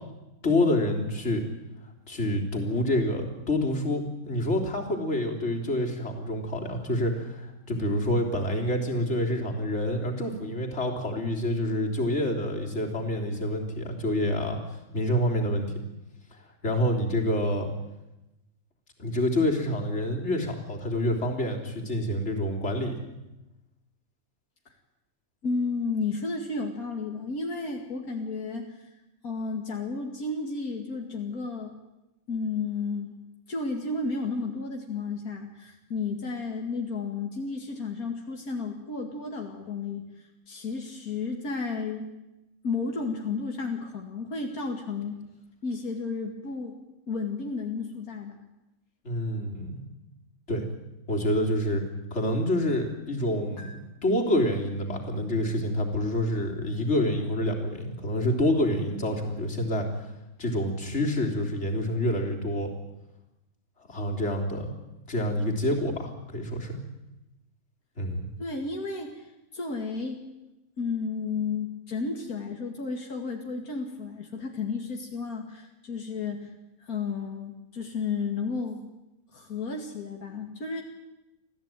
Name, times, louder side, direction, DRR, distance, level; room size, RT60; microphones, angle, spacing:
voice 1, 0.4-1.4 2.1-15.8 16.6-17.7 19.0-23.0 49.0-49.8 50.5-50.7 51.1-51.8 52.1-59.9 60.4-62.7 63.8-64.7 65.1-66.8 68.0-68.3, left 1 dB, 50° left, 1 dB, 3.8 m, -27 dB
voice 2, 25.4-28.9 29.2-31.8 32.3-33.2 33.5-40.0 40.5-42.1 42.6-45.2 45.6-46.8 47.1-48.4 53.6-53.8 68.4-70.2 70.8-76.5 76.8-78.8 79.3-80.8, left 4 dB, 80° left, 1 dB, 2.7 m, -32 dB
26.5 x 16.0 x 9.1 m, 0.98 s
omnidirectional pair, 1.5 m